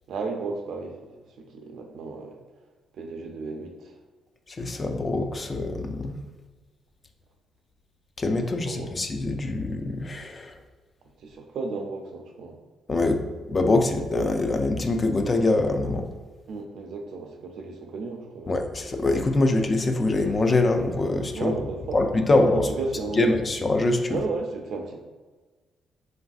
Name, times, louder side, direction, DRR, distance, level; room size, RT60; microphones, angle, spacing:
voice 1, 0.1-0.9 1.4-2.4 2.9-3.9 8.4-8.9 11.2-12.6 16.5-18.5 21.3-22.0 22.5-23.3 24.1-25.0, right 4 dB, 70° right, 3 dB, 0.4 m, -33 dB
voice 2, 4.5-6.1 8.2-10.6 12.9-13.2 13.5-16.1 18.5-21.6 21.9-22.7 23.1-24.2, left 2 dB, 30° left, 5 dB, 0.3 m, -24 dB
3.1 x 2.5 x 2.3 m, 1.3 s
cardioid pair, 90°, 0 cm